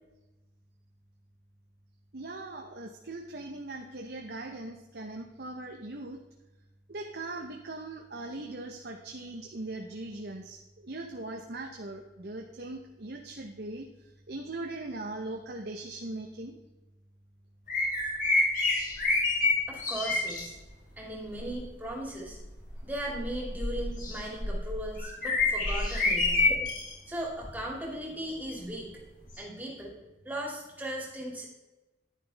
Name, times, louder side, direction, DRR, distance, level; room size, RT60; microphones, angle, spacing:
voice 1, 2.1-6.2 6.9-13.9 14.3-16.6, right 2 dB, 65° right, 2 dB, 0.9 m, -40 dB
sound 1, 17.7-20.4 21.3-21.6 22.2-26.9 27.4-27.6 29.4-29.5, left 2 dB, 50° left, 2.7 m, -28 dB
voice 2, 19.7-20.5 21.0-22.4 22.8-26.5 27.1-29.0 29.4-29.9 30.2-31.5, right 1 dB, 10° right, -2 dB, 2.5 m, -37 dB
10.5 x 10.0 x 3.4 m, 1.1 s
head